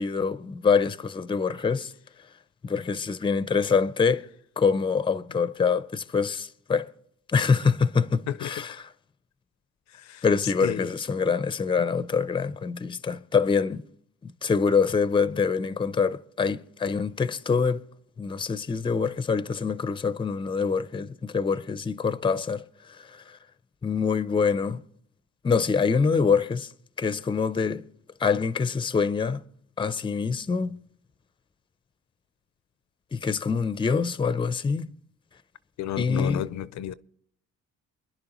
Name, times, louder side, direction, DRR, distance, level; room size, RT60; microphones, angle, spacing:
voice 1, 0.0-1.9 2.6-4.2 4.6-6.9 7.3-8.9 10.2-13.9 14.4-17.8 18.2-23.4 23.8-24.8 25.4-26.7 27.0-27.8 28.2-29.4 29.8-30.8 33.1-35.0 36.0-36.5, left 5 dB, 15° left, 0.5 m, -25 dB
voice 2, 35.8-36.9, left 11 dB, 65° left, 0.5 m, -31 dB
28.5 x 10.5 x 3.0 m
cardioid pair, 90°, 30 cm